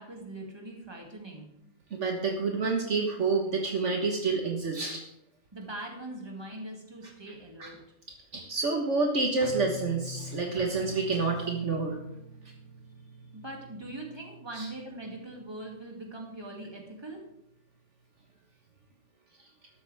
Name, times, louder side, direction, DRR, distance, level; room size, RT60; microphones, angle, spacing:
voice 1, 0.0-1.5 5.5-7.8 13.3-17.2, right 2 dB, 20° right, 0 dB, 2.5 m, -41 dB
voice 2, 1.9-5.0 7.6-7.7 8.3-12.0 14.5-14.7, right 4 dB, 60° right, 2 dB, 1.6 m, -28 dB
sound 1, 9.4-16.3 16.6-17.1 17.5-17.6, equal, 60° left, 2.0 m, -46 dB
13.0 x 12.0 x 3.5 m, 0.83 s
omnidirectional pair, 1.4 m